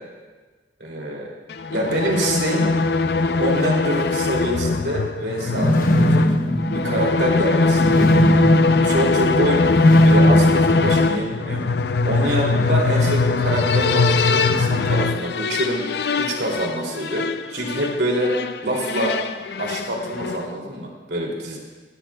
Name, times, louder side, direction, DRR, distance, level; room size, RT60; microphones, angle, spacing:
voice 1, 0.8-1.3 1.7-2.7 3.4-6.3 6.7-8.1 8.8-9.7 10.0-11.7 12.0-15.8 16.2-18.3 18.6-19.2 19.6-21.6, right 1 dB, 75° right, -1 dB, 2.7 m, -25 dB
sound 1, 1.5-20.5, left 3 dB, 70° left, 0.5 m, -21 dB
sound 2, 5.4-11.5, equal, 50° left, 1.2 m, -20 dB
16.0 x 14.0 x 2.3 m, 1.3 s
head